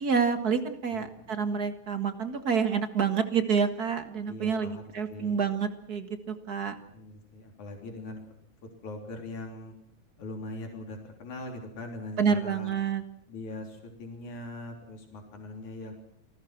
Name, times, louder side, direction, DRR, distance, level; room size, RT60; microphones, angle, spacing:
voice 1, 0.0-6.8 12.2-13.0, right 6 dB, 35° right, 8 dB, 1.9 m, -28 dB
voice 2, 0.9-1.4 4.3-5.4 6.9-8.2 8.8-9.7 10.2-12.7 13.3-15.9, left 2 dB, 90° left, 2 dB, 4.9 m, -41 dB
28.5 x 19.5 x 6.0 m, 0.71 s
omnidirectional pair, 3.3 m